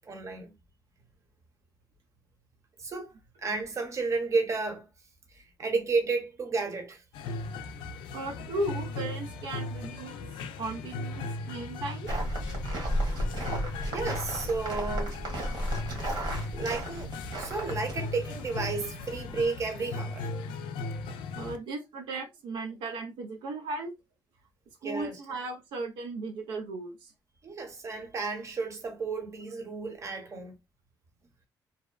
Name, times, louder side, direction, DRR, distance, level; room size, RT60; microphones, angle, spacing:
voice 1, 0.0-0.5 2.8-3.1 3.4-4.9 5.3-7.0 13.8-15.2 16.2-17.1 17.4-20.3 24.8-25.2 27.4-30.5, right 4 dB, 40° right, 0.8 m, -32 dB
sound 1, 7.1-21.6, left 3 dB, 90° left, 0.4 m, -38 dB
voice 2, 8.1-10.3 10.6-12.1 21.4-23.9 24.8-27.1, right 2 dB, 85° right, 0.5 m, -36 dB
sound 2, 12.1-19.5, right 1 dB, 65° right, 1.2 m, -34 dB
2.7 x 2.1 x 2.2 m
cardioid pair, 90°, 8 cm